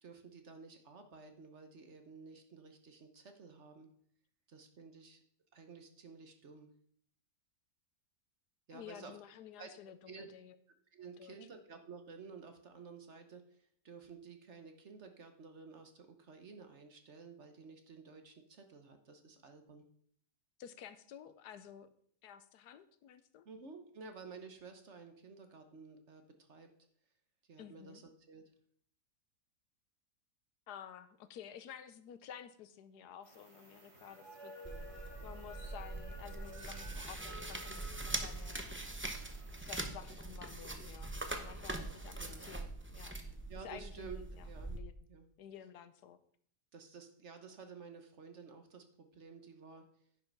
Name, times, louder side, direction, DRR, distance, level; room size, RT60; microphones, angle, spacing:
voice 1, 0.0-3.9 4.5-5.2 5.5-6.7 8.7-9.1 9.6-9.8 10.1-10.3 10.9-19.8 23.4-26.7 27.5-28.0 28.3-28.4 42.2-42.5 43.2-44.7 45.1-45.3 46.7-49.9, right 5 dB, 50° right, 6 dB, 1.2 m, -53 dB
voice 2, 8.7-10.6 11.2-11.4 20.6-21.9 22.2-23.5 27.6-28.0 30.7-34.5 35.2-38.7 39.6-43.1 43.6-44.9 45.4-46.2, left 9 dB, 80° left, 12 dB, 1.3 m, -52 dB
sound 1, 33.2-39.9, right 1 dB, 70° right, 3.0 m, -53 dB
sound 2, 34.6-44.8, right 2 dB, 15° right, 0.3 m, -43 dB
10.0 x 5.7 x 5.4 m, 0.62 s
omnidirectional pair, 1.7 m